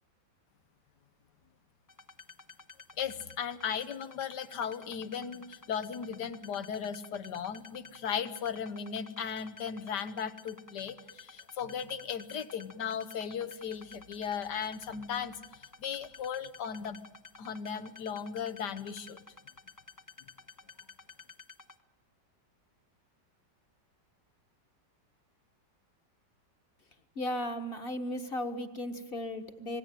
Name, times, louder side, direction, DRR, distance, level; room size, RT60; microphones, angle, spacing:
sound 1, 1.9-21.8, left 4 dB, 15° left, 0.7 m, -52 dB
voice 1, 3.0-15.3 15.8-17.0 17.4-19.2, left 7 dB, 70° left, 10 dB, 1.7 m, -36 dB
voice 2, 27.1-29.8, left 1 dB, 35° left, 7 dB, 1.7 m, -35 dB
26.5 x 19.5 x 9.2 m, 0.92 s
omnidirectional pair, 1.9 m